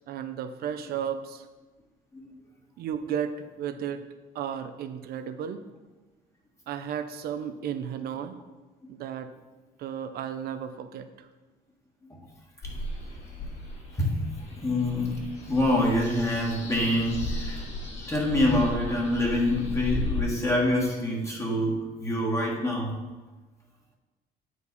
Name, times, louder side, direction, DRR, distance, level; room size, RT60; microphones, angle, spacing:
voice 1, 0.0-1.5 2.8-4.1 4.3-5.6 6.7-8.4 8.9-9.3 9.8-11.3, right 8 dB, 65° right, 10 dB, 0.6 m, -34 dB
sound 1, 12.6-20.2, left 2 dB, 40° left, 2.1 m, -35 dB
voice 2, 13.9-14.3 14.6-15.2 15.5-17.6 18.1-23.0, left 1 dB, 15° left, -3 dB, 1.5 m, -26 dB
8.2 x 4.8 x 4.1 m, 1.2 s
cardioid pair, 110°, 17 cm